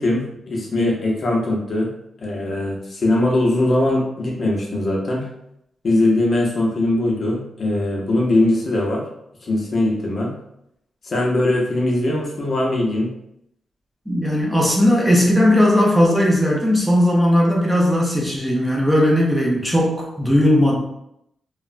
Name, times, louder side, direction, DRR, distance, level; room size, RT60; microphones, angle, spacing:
voice 1, 0.0-1.9 2.2-5.3 5.8-9.0 9.4-10.3 11.0-13.1, left 1 dB, 45° left, -2 dB, 0.6 m, -20 dB
voice 2, 14.1-20.7, left 1 dB, 5° right, -3 dB, 0.5 m, -17 dB
3.1 x 2.0 x 2.4 m, 0.78 s
wide cardioid pair, 135°, 0 cm